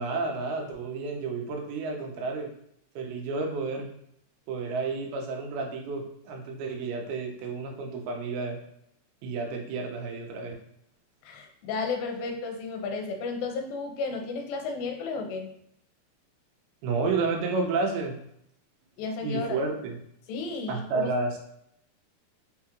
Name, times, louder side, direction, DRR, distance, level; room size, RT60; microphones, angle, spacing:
voice 1, 0.0-2.5 3.0-3.9 4.5-8.6 9.2-10.6 16.8-18.2 19.2-19.9 20.7-21.4, right 4 dB, 90° right, 1 dB, 2.8 m, -31 dB
voice 2, 11.2-15.5 19.0-19.6 20.3-21.1, left 4 dB, 80° left, 3 dB, 2.4 m, -33 dB
6.0 x 2.4 x 2.9 m, 0.72 s
omnidirectional pair, 4.4 m